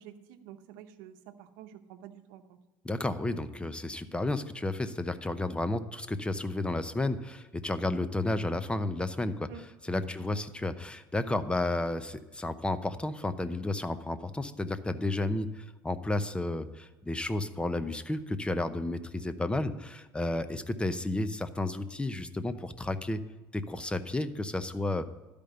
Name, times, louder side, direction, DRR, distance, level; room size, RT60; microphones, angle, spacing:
voice 1, 0.0-2.6 9.5-9.6, right 10 dB, 80° right, 8 dB, 0.9 m, -49 dB
voice 2, 2.8-9.5 9.8-23.2 23.5-25.1, left 2 dB, 10° left, 12 dB, 0.7 m, -32 dB
12.5 x 5.2 x 6.7 m, 1.2 s
supercardioid pair, 100°, 11 cm